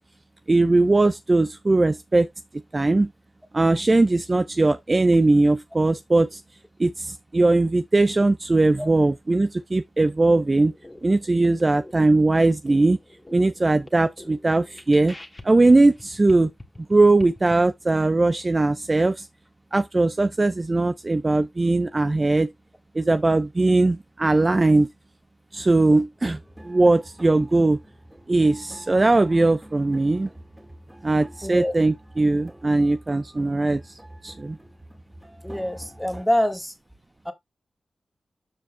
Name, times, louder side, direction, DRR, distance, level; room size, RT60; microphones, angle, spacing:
voice 1, 0.5-2.3 2.7-3.1 3.5-6.4 6.8-10.7 11.0-13.0 13.3-15.1 15.4-16.5 16.9-19.3 19.7-22.5 22.9-24.9 25.5-26.4 26.6-27.8 28.3-30.3 31.0-33.9 34.2-34.6, right 2 dB, 30° right, 0.6 m, -20 dB
sound 1, 10.1-17.5, left 1 dB, 20° left, 1.7 m, -46 dB
sound 2, 26.2-36.3, right 1 dB, 10° right, 2.5 m, -46 dB
voice 2, 31.4-31.7 35.4-36.7 37.3-37.4, left 1 dB, 5° left, 1.6 m, -25 dB
13.0 x 5.0 x 2.2 m
cardioid pair, 70°, 0 cm